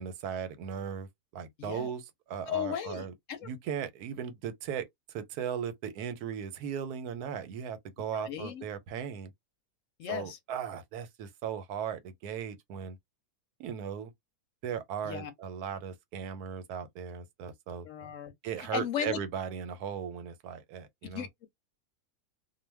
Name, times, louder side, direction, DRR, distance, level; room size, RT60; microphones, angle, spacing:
voice 1, 0.0-3.1 3.4-9.3 10.1-13.0 13.6-14.1 14.6-17.9 18.4-21.3, right 8 dB, 90° right, 1.1 m, -37 dB
voice 2, 1.6-1.9 2.5-3.5 8.1-8.6 10.0-10.4 15.0-15.3 17.8-18.3 18.6-19.2 21.1-21.5, left 9 dB, 70° left, 0.8 m, -36 dB
2.4 x 2.2 x 3.3 m
omnidirectional pair, 1.6 m